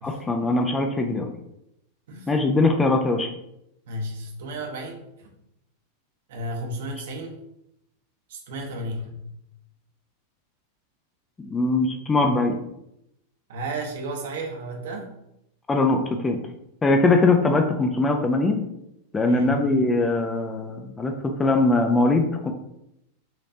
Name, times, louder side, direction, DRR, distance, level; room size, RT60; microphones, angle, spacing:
voice 1, 0.0-1.3 2.3-3.3 11.4-12.6 15.7-16.4 16.8-18.6 19.1-22.5, left 2 dB, 15° left, 4 dB, 0.5 m, -21 dB
voice 2, 3.9-5.3 6.3-7.4 8.3-9.2 13.5-15.1 19.3-19.6, right 1 dB, 55° right, 1 dB, 1.0 m, -33 dB
5.8 x 3.2 x 2.8 m, 0.82 s
figure-of-eight pair, 90°, 0 cm